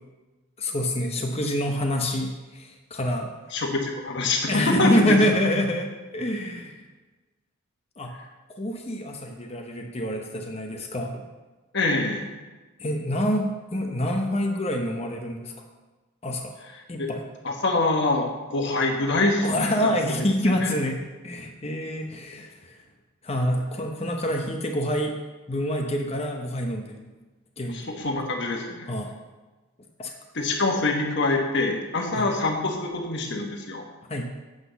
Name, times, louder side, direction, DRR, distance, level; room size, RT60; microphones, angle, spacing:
voice 1, 0.6-3.3 4.5-6.8 8.0-8.1 8.6-11.2 12.8-15.5 16.2-16.5 16.9-17.2 19.4-21.0 21.2-22.8 23.2-25.2 25.5-27.1 27.6-27.8 28.9-29.1 30.0-30.1 32.1-32.3 34.1-34.3, equal, 30° left, 2 dB, 0.8 m, -26 dB
voice 2, 3.5-5.2 11.7-12.3 17.0-17.1 17.4-20.7 27.7-28.9 30.3-33.8, left 2 dB, 55° left, 1 dB, 1.4 m, -25 dB
8.0 x 6.0 x 6.9 m, 1.2 s
head